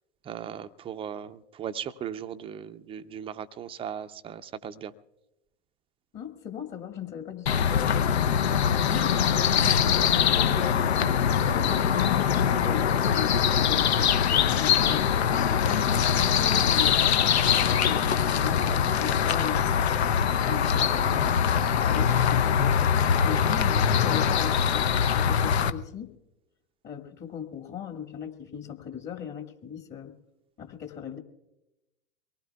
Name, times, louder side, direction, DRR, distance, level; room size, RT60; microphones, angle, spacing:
voice 1, 0.2-4.9, right 8 dB, 15° right, 11 dB, 0.5 m, -37 dB
voice 2, 6.1-7.5 8.9-11.2 11.4-19.9 20.4-21.4 21.9-26.1 26.8-30.1 30.6-31.2, left 8 dB, 30° left, 4 dB, 1.8 m, -38 dB
sound 1, 7.5-25.7, left 8 dB, 70° left, 0.7 m, -23 dB
24.0 x 19.0 x 2.3 m, 0.93 s
figure-of-eight pair, 90°, 34 cm